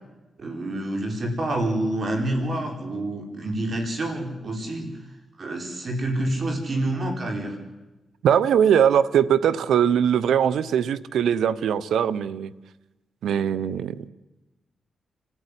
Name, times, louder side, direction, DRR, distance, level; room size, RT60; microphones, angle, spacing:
voice 1, 0.4-5.0 5.4-7.6, right 1 dB, 55° right, 3 dB, 4.6 m, -27 dB
voice 2, 8.2-12.5 13.2-14.1, right 8 dB, 85° right, 17 dB, 0.8 m, -21 dB
29.5 x 13.5 x 9.9 m, 1.1 s
cardioid pair, 60°, 0 cm